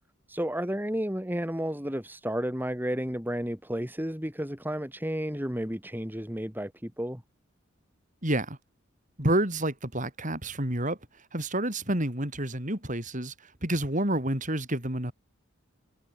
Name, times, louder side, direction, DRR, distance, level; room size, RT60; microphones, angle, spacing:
voice 1, 0.3-7.2, equal, 10° right, 2.5 m, -32 dB
voice 2, 8.2-8.6 9.2-11.0 11.3-13.3 13.6-15.1, right 1 dB, 40° right, 5.9 m, -29 dB
head